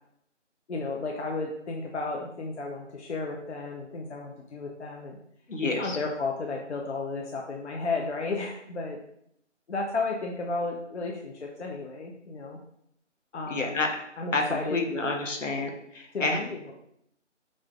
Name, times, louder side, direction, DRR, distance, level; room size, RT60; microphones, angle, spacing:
voice 1, 0.7-5.2 5.8-9.0 9.7-12.6 13.3-13.8 14.2-14.8 16.1-16.7, left 3 dB, 65° left, 0 dB, 0.6 m, -33 dB
voice 2, 5.5-6.0 13.5-14.0 14.3-16.4, left 3 dB, 85° left, 2 dB, 0.9 m, -29 dB
5.0 x 2.6 x 2.3 m, 0.72 s
figure-of-eight pair, 165°, 37 cm